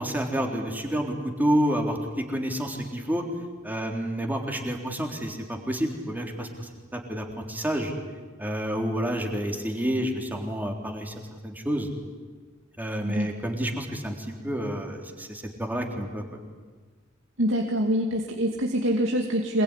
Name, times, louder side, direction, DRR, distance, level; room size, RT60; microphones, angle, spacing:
voice 1, 0.0-3.2 3.6-7.9 8.4-11.1 11.4-11.9 12.8-16.2, equal, 10° right, 2 dB, 3.7 m, -29 dB
voice 2, 17.4-19.6, equal, 85° right, 1 dB, 2.4 m, -25 dB
26.5 x 21.0 x 10.0 m, 1.4 s
head